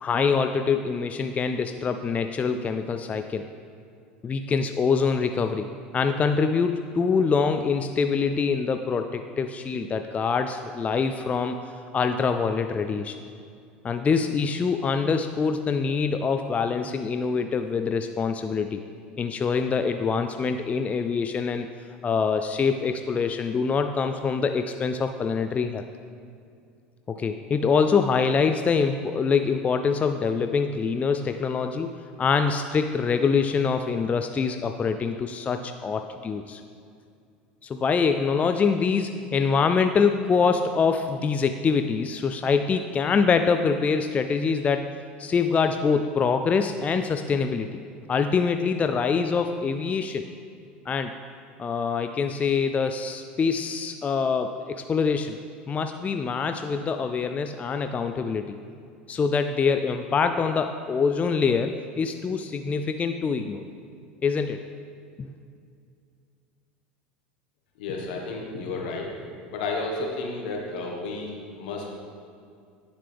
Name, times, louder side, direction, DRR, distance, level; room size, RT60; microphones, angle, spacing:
voice 1, 0.0-3.5 4.2-5.7 5.9-11.6 11.9-13.2 13.8-18.8 19.2-21.7 22.0-25.9 27.1-31.9 32.2-36.6 37.6-44.9 45.2-47.8 48.1-50.3 50.9-51.1 51.6-55.4 55.7-58.6 59.1-63.6 64.2-64.6 65.2-65.3, left 5 dB, 25° left, 7 dB, 0.4 m, -25 dB
voice 2, 67.8-69.1 69.5-71.9, left 3 dB, 75° left, 0 dB, 1.5 m, -32 dB
9.4 x 7.2 x 3.5 m, 2.3 s
hypercardioid pair, 85°, 5 cm